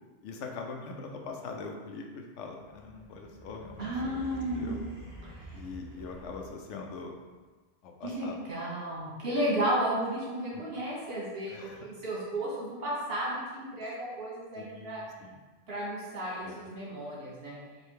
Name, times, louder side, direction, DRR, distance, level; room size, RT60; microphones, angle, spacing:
voice 1, 0.2-3.9 4.2-4.3 4.5-4.8 5.5-7.2 7.8-8.4 10.5-10.6 11.5-11.9 14.5-15.4 16.4-16.6, left 4 dB, 75° left, 2 dB, 0.9 m, -42 dB
sound 1, 2.6-6.8, equal, 25° right, 0.8 m, -47 dB
voice 2, 3.8-4.7 5.3-5.6 8.0-15.0 15.7-17.6, right 1 dB, 55° right, -6 dB, 1.3 m, -33 dB
3.3 x 2.7 x 4.4 m, 1.3 s
omnidirectional pair, 1.3 m